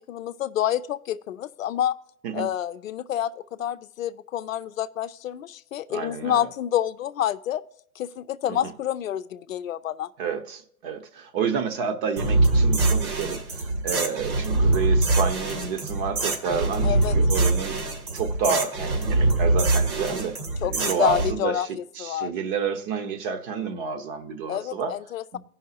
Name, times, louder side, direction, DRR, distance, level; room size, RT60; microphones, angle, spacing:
voice 1, 0.0-1.9 2.3-7.6 8.0-10.1 16.8-17.1 20.6-21.7 22.0-22.3 24.5-25.4, left 11 dB, 65° left, 0.6 m, -28 dB
voice 2, 5.9-6.5 8.5-8.7 10.2-17.8 18.1-20.4 20.6-21.7 22.0-24.9 25.3-25.4, right 5 dB, 40° right, 1.1 m, -29 dB
sound 1, 12.2-21.3, right 2 dB, 75° right, 2.4 m, -23 dB
16.5 x 5.6 x 2.8 m
figure-of-eight pair, 115°, 44 cm